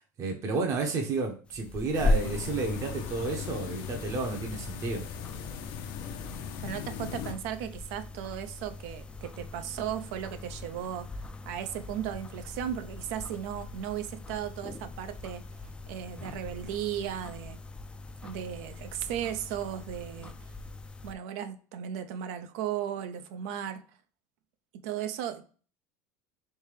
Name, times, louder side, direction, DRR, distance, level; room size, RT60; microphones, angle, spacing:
voice 1, 0.2-5.1, right 3 dB, 40° right, 0.7 m, -31 dB
sound 1, 1.5-21.1, left 2 dB, 10° left, 0.3 m, -38 dB
sound 2, 1.9-7.3, left 9 dB, 60° left, 0.5 m, -39 dB
voice 2, 6.6-11.1 11.5-15.4 15.9-17.6 18.2-20.3 21.0-23.8 24.8-25.4, right 10 dB, 75° right, 0.5 m, -36 dB
3.3 x 3.2 x 3.2 m
supercardioid pair, 130°, 8 cm